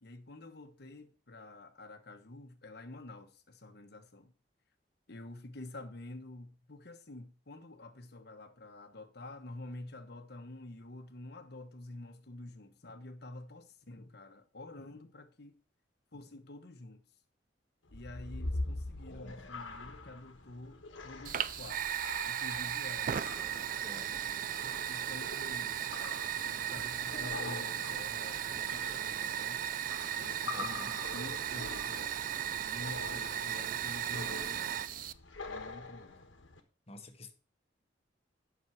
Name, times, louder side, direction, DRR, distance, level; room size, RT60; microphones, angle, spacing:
voice 1, 0.0-4.3 5.1-15.6 16.1-17.0 17.9-21.9 22.2-23.3 24.6-29.7 30.2-34.8 35.5-36.2, left 2 dB, 55° left, 1.1 m, -49 dB
sound 1, 17.9-36.6, left 2 dB, 85° left, 1.3 m, -45 dB
Fire, 21.2-35.1, right 9 dB, 45° right, 0.3 m, -36 dB
voice 2, 22.9-23.3 23.5-24.3 30.5-30.9 36.9-37.3, left 2 dB, 35° left, 1.1 m, -51 dB
8.7 x 6.2 x 4.6 m
head